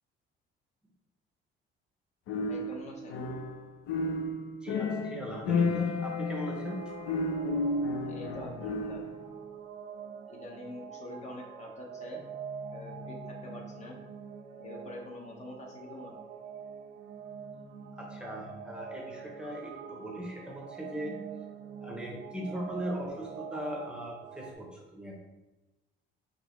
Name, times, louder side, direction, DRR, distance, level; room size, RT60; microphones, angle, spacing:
sound 1, 2.3-3.6 3.9-9.2, left 3 dB, 80° left, 0.6 m, -32 dB
voice 1, 2.5-3.2 8.1-9.0 10.3-12.2 12.7-14.0 14.6-16.2, left 2 dB, 35° left, 0 dB, 0.6 m, -45 dB
voice 2, 4.6-6.8 18.0-21.2 21.8-25.1, equal, 5° right, -2 dB, 0.6 m, -39 dB
sound 2, 6.6-24.5, right 6 dB, 55° right, 0.4 m, -45 dB
5.9 x 3.0 x 3.0 m, 1.0 s
cardioid pair, 180°, 21 cm